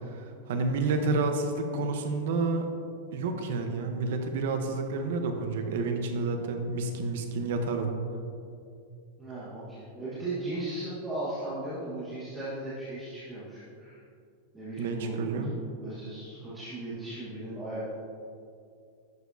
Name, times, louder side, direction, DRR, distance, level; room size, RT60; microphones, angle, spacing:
voice 1, 0.1-2.7 3.1-7.9 14.8-15.5, right 3 dB, 65° right, 5 dB, 1.0 m, -29 dB
voice 2, 9.2-14.0 14.5-15.5 15.8-17.9, right 2 dB, 10° right, -11 dB, 1.5 m, -37 dB
11.0 x 6.8 x 2.8 m, 2.5 s
supercardioid pair, 165°, 0 cm